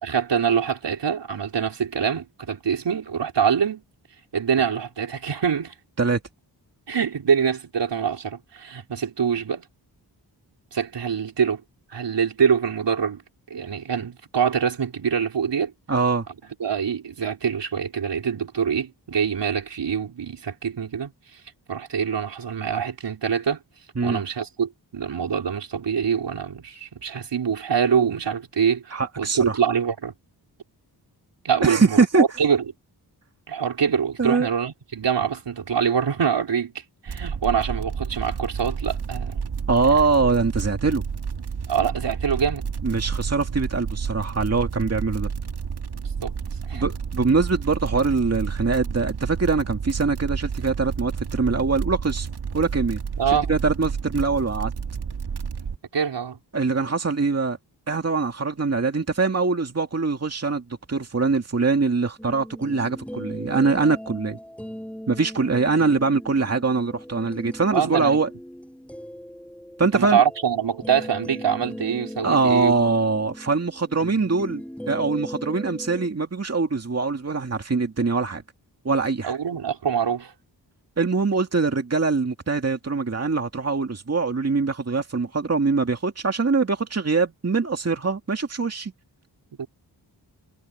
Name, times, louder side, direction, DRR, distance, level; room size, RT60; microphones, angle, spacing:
voice 1, 0.0-3.8 4.3-5.7 6.9-9.6 10.7-11.6 11.9-13.2 13.5-15.7 16.6-21.1 21.7-23.6 24.0-30.1 31.4-32.6 33.5-36.7 37.0-39.4 40.0-40.1 41.7-42.7 46.2-46.3 46.7-46.8 53.2-53.5 55.9-56.4 67.7-68.2 69.9-72.7 79.2-80.3 89.6-89.7, right 7 dB, 80° right, 4.5 m, -24 dB
voice 2, 15.9-16.3 24.0-24.2 28.9-29.6 31.6-32.2 34.2-34.5 39.7-41.0 42.8-45.3 46.7-52.3 52.5-53.0 53.3-54.7 56.5-57.6 57.9-64.4 65.1-68.3 69.8-70.2 72.2-78.4 78.8-79.3 81.0-88.9, right 4 dB, 35° right, 2.4 m, -23 dB
sound 1, 37.1-55.8, right 6 dB, 65° right, 1.9 m, -30 dB
sound 2, 62.2-76.1, equal, 5° left, 7.4 m, -38 dB
wide cardioid pair, 85°, 42 cm